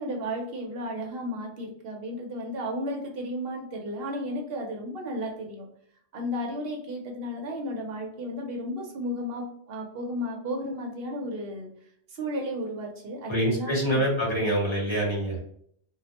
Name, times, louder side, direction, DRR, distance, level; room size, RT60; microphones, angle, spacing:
voice 1, 0.0-5.7 6.1-11.7 12.1-14.1, equal, 65° right, 1 dB, 0.8 m, -33 dB
voice 2, 13.3-15.4, right 1 dB, 30° left, -5 dB, 0.9 m, -25 dB
2.3 x 2.1 x 2.8 m, 0.65 s
omnidirectional pair, 1.1 m